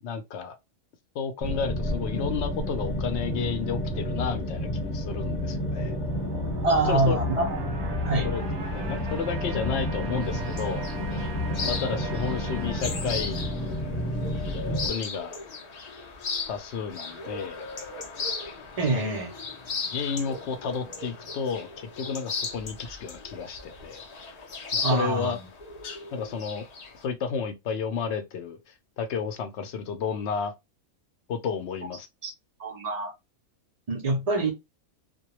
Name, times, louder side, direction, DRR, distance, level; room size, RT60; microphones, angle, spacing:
voice 1, 0.0-0.6 1.1-6.0 6.6-7.2 8.2-8.5 8.7-10.9 11.6-13.4 14.7-15.4 16.5-17.6 18.9-19.1 19.9-24.0 24.7-25.4 26.1-26.7 27.0-28.6 29.0-30.5 31.3-32.1, left 6 dB, 65° left, 0.7 m, -32 dB
sound 1, 1.4-14.9, left 1 dB, 20° left, 0.8 m, -30 dB
sound 2, 5.4-14.6, right 5 dB, 45° right, 0.8 m, -40 dB
voice 2, 6.6-7.6 8.0-8.3 18.8-19.3 24.8-25.5 32.2-32.3 32.6-33.1 33.9-34.5, right 2 dB, 70° right, 0.3 m, -25 dB
sound 3, 10.2-27.0, left 4 dB, 85° left, 0.3 m, -37 dB
2.2 x 2.2 x 2.8 m
omnidirectional pair, 1.5 m